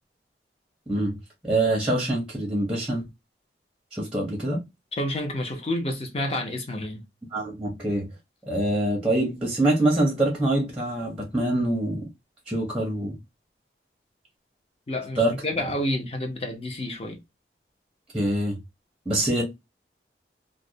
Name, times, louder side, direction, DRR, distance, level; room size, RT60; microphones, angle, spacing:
voice 1, 0.9-1.2 1.4-3.0 3.9-4.6 7.3-8.1 8.5-12.0 12.5-13.2 15.2-15.3 18.1-18.6 19.1-19.4, right 1 dB, 5° right, 0.6 m, -24 dB
voice 2, 4.9-7.0 14.9-17.2, left 1 dB, 35° left, 0.6 m, -29 dB
2.4 x 2.0 x 2.6 m
head